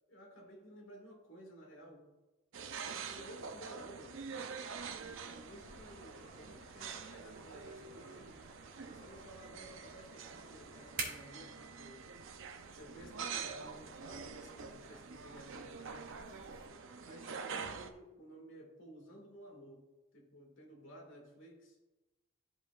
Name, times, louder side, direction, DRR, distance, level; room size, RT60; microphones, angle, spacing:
voice 1, 0.1-2.1 2.8-4.2 4.9-8.4 8.8-12.1 12.7-16.1 17.0-21.8, right 1 dB, 55° left, 0 dB, 2.0 m, -54 dB
sound 1, 2.5-17.9, right 5 dB, 55° right, 0.5 m, -46 dB
sound 2, 4.8-16.7, right 3 dB, 40° right, 1.6 m, -52 dB
sound 3, 5.5-11.9, left 1 dB, 30° left, 1.7 m, -62 dB
14.0 x 4.9 x 2.5 m, 1.1 s
head